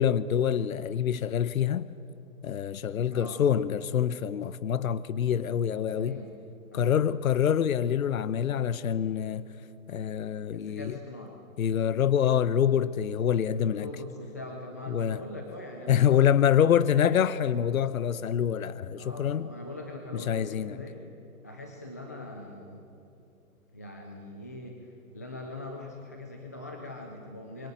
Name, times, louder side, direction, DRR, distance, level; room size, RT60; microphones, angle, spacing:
voice 1, 0.0-1.9 2.4-6.2 6.7-9.5 9.9-10.9 11.6-13.9 14.9-15.2 15.9-19.5 20.1-20.8, left 9 dB, 70° left, 0.9 m, -26 dB
voice 2, 3.1-3.4 6.0-6.3 6.7-7.0 10.5-11.4 13.6-16.7 16.9-17.2 18.9-21.1 21.4-22.8 23.7-24.9 25.1-27.7, left 1 dB, 10° left, 0.5 m, -42 dB
26.5 x 23.0 x 7.9 m
hypercardioid pair, 165°, 43 cm